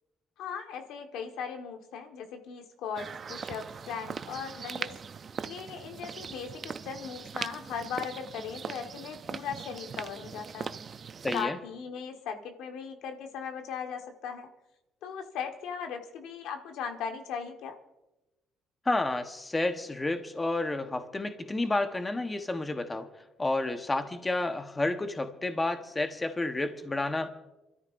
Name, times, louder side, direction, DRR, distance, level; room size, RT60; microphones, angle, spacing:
voice 1, 0.4-4.9 5.4-10.8 11.3-14.5 15.0-17.8, left 7 dB, 85° left, 1.5 m, -38 dB
sound 1, 3.0-11.5, right 6 dB, 40° right, 0.5 m, -40 dB
voice 2, 11.2-11.6 18.8-23.1 23.4-27.3, left 2 dB, 20° left, 1.2 m, -30 dB
27.5 x 13.5 x 2.6 m
cardioid pair, 105°, 0 cm